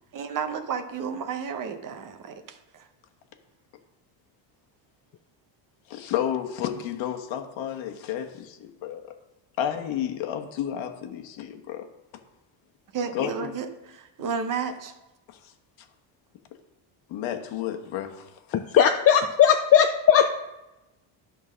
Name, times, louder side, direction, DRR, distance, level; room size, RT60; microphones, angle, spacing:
voice 1, 0.1-2.9 12.9-15.0, right 6 dB, 40° right, 8 dB, 0.8 m, -32 dB
voice 2, 5.9-9.1 9.6-11.9 13.1-13.5 17.1-18.6, left 10 dB, 70° left, 5 dB, 1.2 m, -31 dB
voice 3, 18.5-20.4, left 8 dB, 35° left, 6 dB, 0.4 m, -18 dB
11.0 x 3.8 x 6.2 m, 1.0 s
cardioid pair, 130°, 48 cm